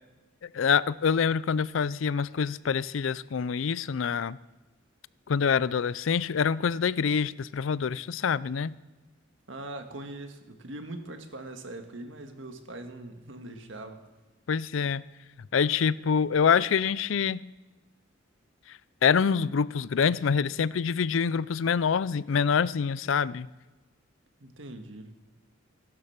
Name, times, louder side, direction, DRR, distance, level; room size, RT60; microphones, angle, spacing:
voice 1, 0.4-4.4 5.3-8.7 14.5-15.0 15.5-17.5 18.7-23.5, left 6 dB, 75° left, 0.4 m, -26 dB
voice 2, 9.5-14.0 24.4-25.1, right 2 dB, 70° right, 1.7 m, -41 dB
16.5 x 12.0 x 5.9 m
head